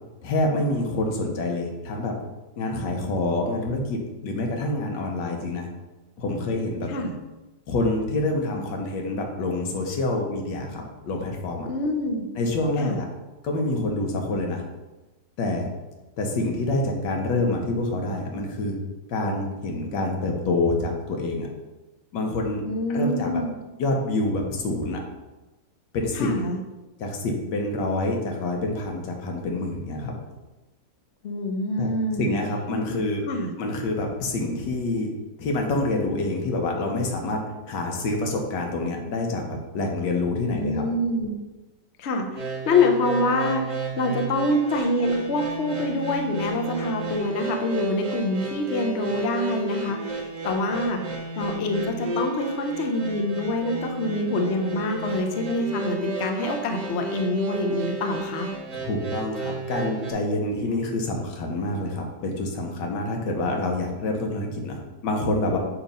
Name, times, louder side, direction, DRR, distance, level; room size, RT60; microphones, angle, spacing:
voice 1, 0.2-2.2 2.6-5.7 6.2-6.9 7.7-11.7 12.4-13.1 13.4-14.6 15.4-15.7 16.2-18.8 19.1-21.5 22.1-22.6 22.9-23.4 23.8-25.0 25.9-26.3 27.0-30.1 31.8-31.9 32.2-33.3 33.6-35.1 35.4-40.8 58.7-65.6, left 2 dB, 80° left, 2 dB, 1.6 m, -27 dB
voice 2, 11.7-12.3 12.8-13.0 22.6-23.6 26.1-26.6 31.2-32.3 32.9-33.0 33.3-33.5 40.5-41.4 42.0-51.0 51.4-58.5, left 2 dB, 55° left, 4 dB, 0.7 m, -26 dB
sound 1, 42.3-60.1, right 3 dB, 50° right, 1.1 m, -32 dB
7.0 x 3.0 x 5.3 m, 1.1 s
omnidirectional pair, 1.9 m